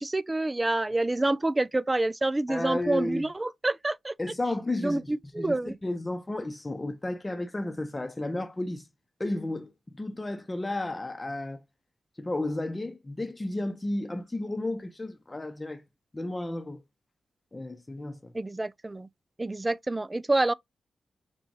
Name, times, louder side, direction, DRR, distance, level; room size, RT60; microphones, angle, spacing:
voice 1, 0.0-4.1 4.8-5.7 18.3-19.1 19.4-20.5, right 2 dB, 25° right, 0.3 m, -27 dB
voice 2, 2.5-3.3 4.2-8.9 9.2-11.6 12.2-15.8 16.1-16.8 17.5-18.3, left 2 dB, 30° left, 0.8 m, -33 dB
5.8 x 2.4 x 2.6 m
supercardioid pair, 40°, 0 cm